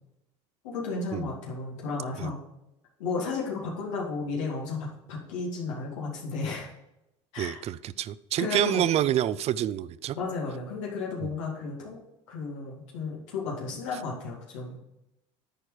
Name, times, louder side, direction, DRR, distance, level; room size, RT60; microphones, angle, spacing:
voice 1, 0.6-2.4 3.0-6.7 7.3-7.6 8.4-8.9 10.1-12.0 12.3-14.8, left 4 dB, 85° left, 2.3 m, -33 dB
voice 2, 7.4-10.2, right 12 dB, 45° right, 0.5 m, -27 dB
10.0 x 4.5 x 4.9 m
supercardioid pair, 90°, 16 cm